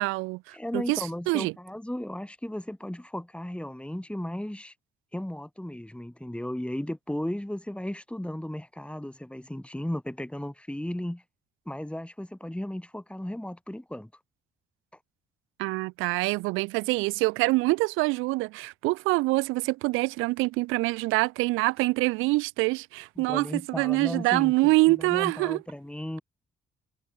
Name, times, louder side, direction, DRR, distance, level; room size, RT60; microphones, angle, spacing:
voice 1, 0.0-1.5 15.6-25.6, right 23 dB, 90° right, 0.7 m, -25 dB
voice 2, 0.5-4.7 5.1-11.2 11.7-14.1 23.2-26.2, left 1 dB, 5° left, 4.2 m, -35 dB
supercardioid pair, 55°, 20 cm